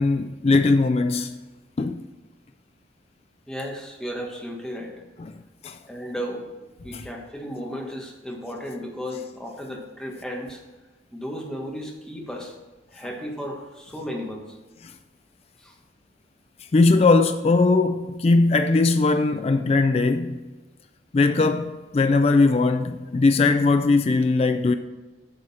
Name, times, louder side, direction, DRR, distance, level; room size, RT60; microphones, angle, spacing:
voice 1, 0.0-1.3 1.8-2.0 5.2-5.3 5.6-5.8 6.9-7.0 14.8-14.9 16.7-20.4 21.1-24.7, left 3 dB, 35° left, 0.3 m, -20 dB
voice 2, 3.5-4.9 5.9-6.5 6.8-10.6 11.1-12.5 12.9-14.6 15.6-15.7, equal, 5° left, 1.4 m, -34 dB
8.6 x 6.4 x 4.2 m
head